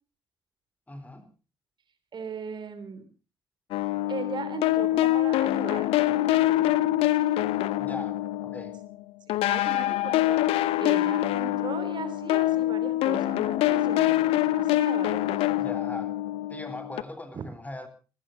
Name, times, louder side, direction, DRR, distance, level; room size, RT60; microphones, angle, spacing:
voice 1, 0.9-1.3 7.8-8.7 15.6-16.1 16.5-17.9, left 1 dB, 15° left, 3.8 m, -40 dB
voice 2, 2.1-3.1 4.1-6.0 9.5-10.4 10.8-14.2 14.5-15.6 17.3-17.4, right 5 dB, 45° right, 3.1 m, -37 dB
sound 1, 3.7-8.9 9.3-17.0, left 15 dB, 65° left, 0.8 m, -25 dB
27.0 x 15.5 x 2.8 m
figure-of-eight pair, 45°, 11 cm